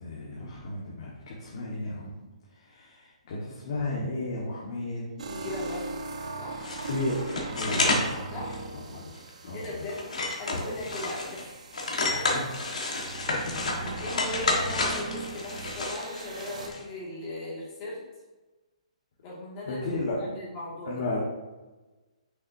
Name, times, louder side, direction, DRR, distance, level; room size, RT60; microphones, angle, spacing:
voice 1, 0.0-2.2 2.6-5.1 6.9-8.5 8.7-9.1 9.4-9.9 12.0-12.6 13.3-13.9 19.7-20.2 20.9-21.2, left 2 dB, 55° left, -5 dB, 1.4 m, -34 dB
voice 2, 5.1-6.1 6.4-6.7 8.3-8.6 9.5-10.1 10.4-11.6 12.0-12.3 13.1-13.4 14.0-18.0 19.2-19.9 20.2-21.0, left 2 dB, 25° left, -5 dB, 2.0 m, -38 dB
sound 1, 5.2-16.7, right 3 dB, 80° right, 1.0 m, -40 dB
sound 2, 6.6-8.1 8.5-8.6 9.1-9.3 9.6-11.4 11.7-16.8, left 2 dB, 85° left, 1.4 m, -30 dB
6.2 x 5.9 x 2.7 m, 1.2 s
hypercardioid pair, 160°, 4 cm